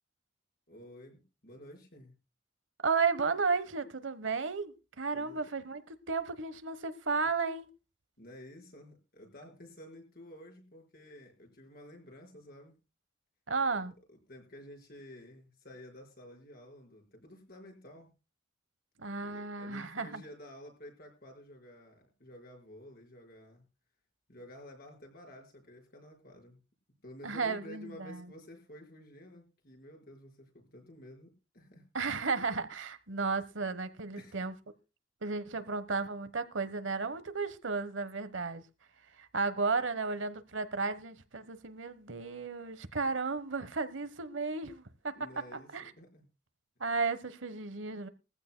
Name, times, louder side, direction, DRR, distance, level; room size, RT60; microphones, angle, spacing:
voice 1, 0.7-2.1 5.1-5.4 8.2-12.8 13.7-13.8 14.1-18.1 19.2-23.6 24.3-26.6 27.0-31.9 34.1-34.4 45.2-46.2, left 1 dB, 55° left, 4.9 m, -52 dB
voice 2, 2.8-7.7 13.5-13.9 19.0-20.2 27.2-28.2 31.9-34.5 35.2-38.6 39.2-45.1 45.5-45.9 46.8-48.1, right 4 dB, 85° right, 1.1 m, -34 dB
20.5 x 15.0 x 2.2 m
head